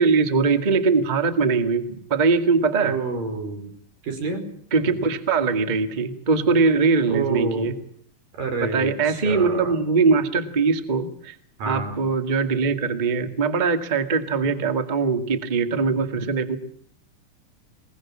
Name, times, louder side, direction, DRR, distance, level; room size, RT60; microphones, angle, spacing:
voice 1, 0.0-3.0 4.7-7.7 8.6-11.3 11.6-16.6, right 4 dB, 20° right, 8 dB, 1.4 m, -21 dB
voice 2, 2.8-3.7 4.0-4.4 7.1-7.7 8.4-9.7 11.6-12.0, right 4 dB, 80° right, 5 dB, 6.6 m, -28 dB
22.5 x 21.5 x 7.5 m, 0.64 s
omnidirectional pair, 3.9 m